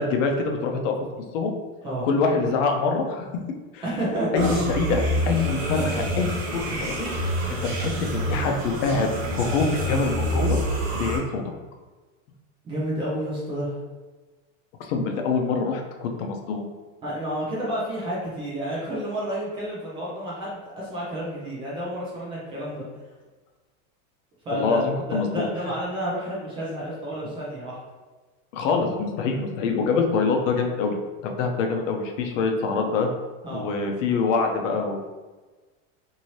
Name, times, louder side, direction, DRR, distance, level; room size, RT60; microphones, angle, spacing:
voice 1, 0.0-1.6 2.0-3.3 3.7-3.8 4.3-10.6 11.0-11.4 14.8-16.6 24.5-25.5 28.5-30.9 31.2-33.1 33.5-35.0, left 4 dB, 70° left, 3 dB, 0.6 m, -25 dB
voice 2, 3.8-4.5 4.9-5.1 12.6-13.8 17.0-22.9 24.5-24.8 25.1-27.8 33.4-33.7, equal, 15° right, -7 dB, 0.4 m, -30 dB
sound 1, 4.4-11.2, right 1 dB, 50° right, 0.8 m, -27 dB
2.7 x 2.7 x 3.0 m, 1.3 s
supercardioid pair, 160°, 39 cm